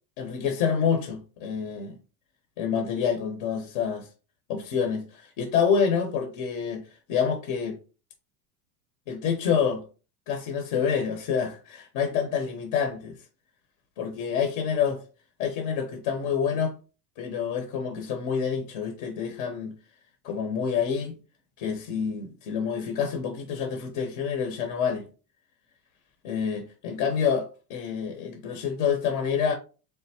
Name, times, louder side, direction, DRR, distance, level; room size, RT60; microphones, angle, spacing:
voice 1, 0.2-2.0 2.6-4.1 4.5-6.8 7.1-7.8 9.1-9.8 10.3-13.2 14.0-15.0 15.4-16.7 17.2-19.7 20.2-21.2 21.6-25.0 26.2-29.5, left 7 dB, 45° left, 0.8 m, -27 dB
3.9 x 3.4 x 2.7 m
supercardioid pair, 155°, 44 cm